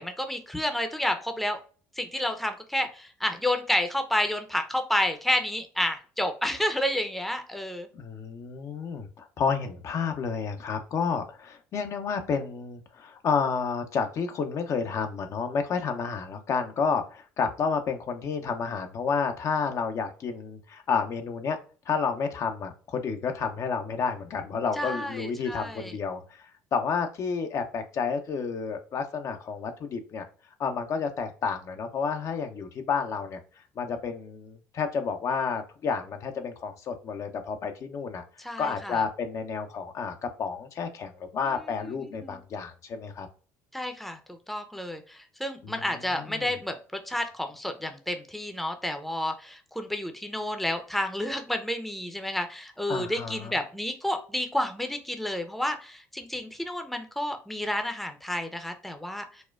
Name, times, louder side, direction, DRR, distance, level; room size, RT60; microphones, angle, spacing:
voice 1, 0.0-1.6 2.0-7.9 24.8-25.9 38.4-39.0 41.8-42.4 43.7-46.7 47.1-59.4, left 1 dB, ahead, 6 dB, 0.6 m, -30 dB
voice 2, 7.9-21.6 21.9-30.2 30.6-33.4 33.8-38.2 38.6-43.3 45.6-45.7 46.1-46.6 52.9-53.6, left 5 dB, 50° left, 5 dB, 0.6 m, -30 dB
4.1 x 2.2 x 2.3 m, 0.39 s
supercardioid pair, 70°, 7 cm